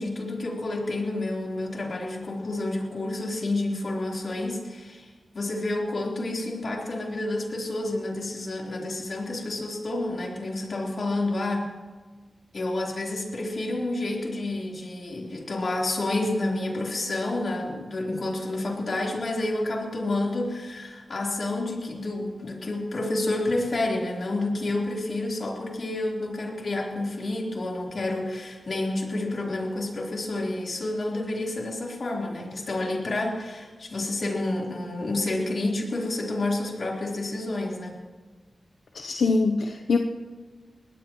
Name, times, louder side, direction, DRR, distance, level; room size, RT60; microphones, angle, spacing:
voice 1, 0.0-11.7 12.5-38.0, left 2 dB, 65° left, -2 dB, 3.9 m, -29 dB
voice 2, 38.9-40.0, left 3 dB, 85° left, 5 dB, 0.8 m, -23 dB
22.0 x 17.5 x 3.1 m, 1.4 s
cardioid pair, 50°, 0 cm